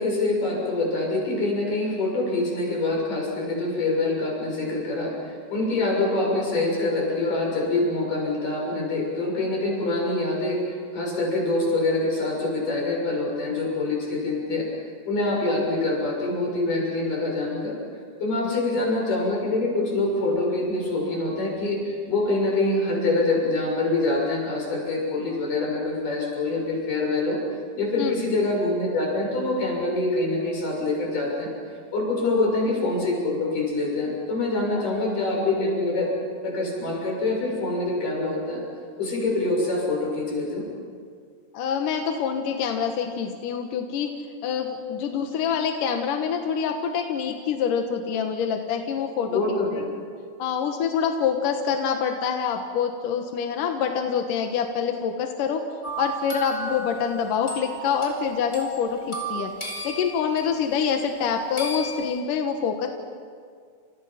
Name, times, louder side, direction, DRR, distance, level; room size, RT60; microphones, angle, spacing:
voice 1, 0.0-14.7 15.1-17.8 18.2-27.4 27.8-31.5 31.9-36.1 36.4-38.6 39.0-40.7 49.3-49.7, left 2 dB, 45° left, -1 dB, 8.1 m, -25 dB
voice 2, 41.5-44.1 44.4-50.0 50.4-55.6 56.0-62.9, left 7 dB, 65° left, 4 dB, 2.2 m, -26 dB
sound 1, 55.8-60.6 61.6-62.1, right 2 dB, 15° left, 4.3 m, -34 dB
29.5 x 28.5 x 5.9 m, 2.1 s
omnidirectional pair, 5.4 m